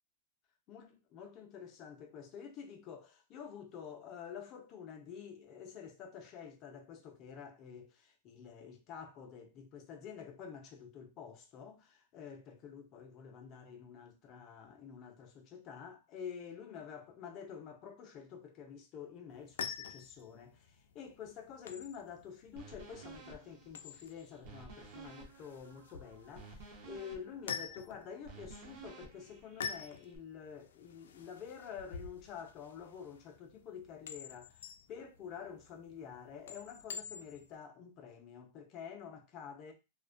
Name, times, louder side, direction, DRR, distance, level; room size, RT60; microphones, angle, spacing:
voice 1, 0.7-34.6 34.9-39.7, left 7 dB, 25° left, 0.4 m, -49 dB
sound 1, 19.3-37.5, left 7 dB, 85° left, 0.3 m, -48 dB
sound 2, 22.6-30.2, right 4 dB, 50° right, 0.6 m, -54 dB
2.5 x 2.1 x 2.4 m
supercardioid pair, 170°, 0 cm